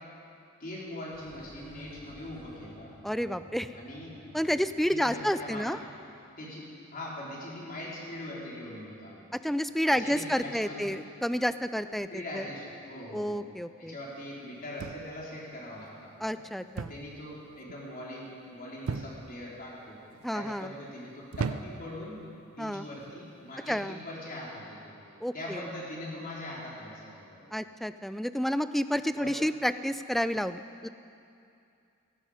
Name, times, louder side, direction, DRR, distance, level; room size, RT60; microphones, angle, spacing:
voice 1, 0.6-3.0 3.7-4.2 4.9-5.9 6.4-9.3 9.9-10.9 12.1-13.4 13.8-16.4 16.9-20.0 20.3-22.2 22.6-25.0 25.3-27.5 29.1-29.3, left 1 dB, 45° left, -5 dB, 3.9 m, -41 dB
sound 1, 1.1-6.3 6.6-6.7, equal, 25° left, 3.0 m, -54 dB
voice 2, 3.0-3.7 4.3-5.8 9.3-12.4 13.1-13.9 16.2-16.9 20.2-20.7 22.6-22.9 23.7-24.0 25.2-25.6 27.5-30.9, equal, ahead, 12 dB, 0.4 m, -30 dB
sound 2, 14.8-15.3 16.8-17.1 17.4-17.9 18.9-19.4 20.1-20.5 21.3-22.0 22.9-23.2, right 4 dB, 85° right, 0.5 m, -36 dB
18.0 x 15.5 x 5.0 m, 2.5 s
head